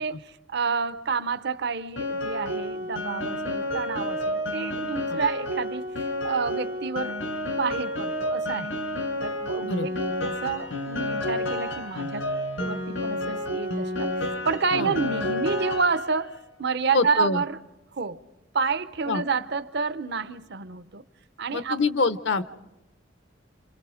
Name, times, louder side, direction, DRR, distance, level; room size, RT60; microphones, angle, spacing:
voice 1, 0.0-5.8 6.2-7.2 7.5-8.7 9.2-12.3 12.6-17.6 17.9-18.2 18.5-21.0 21.4-21.8, right 5 dB, 60° right, 0.7 m, -29 dB
Piano, 2.0-16.3, left 1 dB, 90° left, 4.4 m, -30 dB
voice 2, 16.9-17.4 19.1-19.2 21.5-22.4, left 3 dB, 70° left, 0.8 m, -25 dB
27.5 x 27.0 x 5.0 m
head